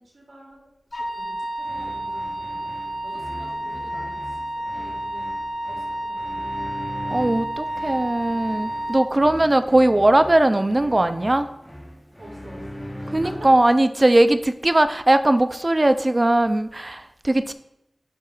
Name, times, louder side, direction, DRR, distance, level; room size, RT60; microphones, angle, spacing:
voice 1, 0.0-2.7 3.0-5.3 5.6-6.8 12.2-13.5, right 1 dB, 75° right, -4 dB, 2.7 m, -46 dB
Wind instrument woodwind instrument, 0.9-9.1, right 1 dB, 60° left, 1.0 m, -30 dB
sound 1, 1.6-13.7, equal, 10° left, 1.0 m, -39 dB
voice 2, 7.1-11.5 13.1-17.5, right 1 dB, 35° right, 10 dB, 0.4 m, -19 dB
11.5 x 4.6 x 2.4 m, 0.87 s
wide cardioid pair, 70°, 0 cm